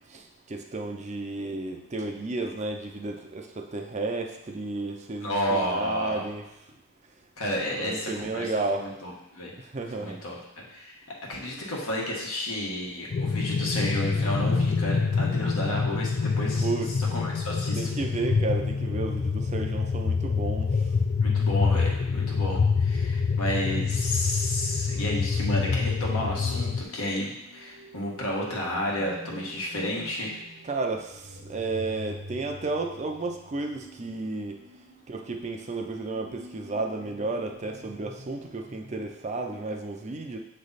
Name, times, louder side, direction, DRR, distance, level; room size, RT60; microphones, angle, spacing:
voice 1, 0.5-6.4 7.7-8.9 9.7-10.2 16.6-16.9 17.7-20.7 30.6-31.0 31.5-34.6 35.1-40.4, right 3 dB, 30° right, 3 dB, 0.5 m, -32 dB
voice 2, 5.2-6.2 7.4-9.5 9.9-11.0 11.3-17.8 21.2-30.4, left 1 dB, 85° left, -2 dB, 1.4 m, -31 dB
sound 1, 13.1-26.8, left 5 dB, 45° left, 0.3 m, -26 dB
sound 2, 25.3-39.1, equal, 55° right, 0.9 m, -47 dB
7.2 x 3.2 x 4.0 m, 0.87 s
head